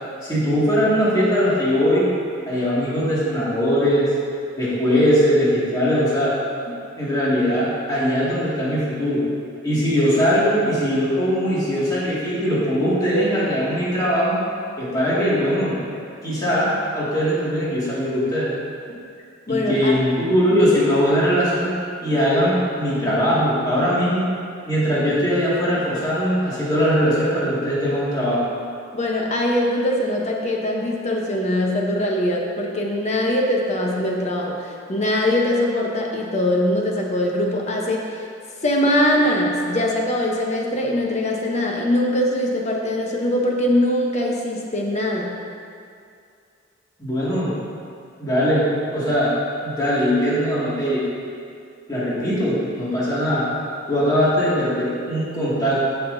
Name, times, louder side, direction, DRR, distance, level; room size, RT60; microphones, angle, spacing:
voice 1, 0.2-2.0 2.5-4.1 4.6-6.3 7.0-9.2 9.6-14.4 14.8-15.8 16.2-18.5 19.5-21.7 22.0-24.2 24.7-28.4 47.0-47.5 48.2-49.3 49.6-51.0 51.9-53.4 53.9-55.8, equal, 20° left, -9 dB, 2.1 m, -20 dB
voice 2, 19.5-20.0 28.9-38.3 38.6-45.4, left 1 dB, 35° left, -1 dB, 0.9 m, -22 dB
13.5 x 5.8 x 2.7 m, 2.4 s
head